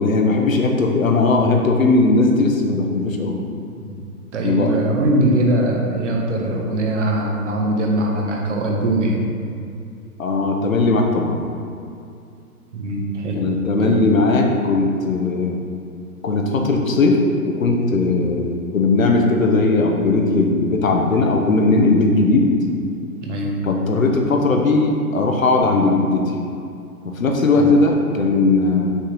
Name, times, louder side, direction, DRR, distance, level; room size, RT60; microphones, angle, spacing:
voice 1, 0.0-3.4 4.4-4.8 10.2-11.4 13.3-15.6 16.2-18.5 18.7-22.5 23.6-26.3 27.0-28.9, left 3 dB, 60° left, 2 dB, 1.0 m, -18 dB
voice 2, 4.3-9.2 12.7-13.4 13.7-14.0 23.2-23.6 27.6-27.7, right 1 dB, 50° right, -1 dB, 1.3 m, -21 dB
6.3 x 4.2 x 5.3 m, 2.5 s
figure-of-eight pair, 125°, 47 cm